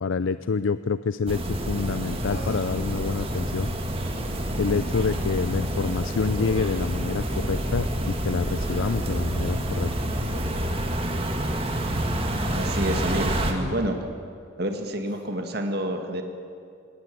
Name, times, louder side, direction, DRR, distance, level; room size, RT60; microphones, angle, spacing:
voice 1, 0.0-3.7 4.6-9.9, left 5 dB, 80° left, 14 dB, 0.5 m, -27 dB
sound 1, 1.3-13.5, right 1 dB, 30° right, 2.0 m, -28 dB
Human voice, 2.2-2.8 4.5-4.8 6.3-6.7 8.4-8.9 10.3-10.5 11.4-11.7 12.8-13.4 15.0-15.3, right 1 dB, 35° left, 5.2 m, -41 dB
voice 2, 12.6-14.0 14.6-16.2, right 1 dB, 50° right, 5 dB, 1.9 m, -28 dB
19.0 x 19.0 x 9.5 m, 2.4 s
head